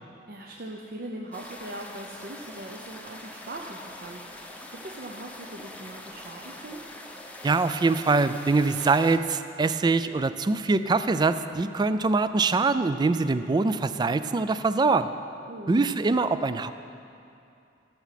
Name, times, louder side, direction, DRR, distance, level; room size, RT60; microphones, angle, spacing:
voice 1, 0.3-4.2 4.7-6.8 15.5-16.0, right 1 dB, 55° right, 0 dB, 0.7 m, -40 dB
sound 1, 1.3-9.2, left 1 dB, 10° left, 0.7 m, -43 dB
voice 2, 7.4-15.1 15.7-16.7, right 3 dB, 25° right, 12 dB, 0.3 m, -23 dB
13.5 x 7.3 x 5.8 m, 2.6 s
head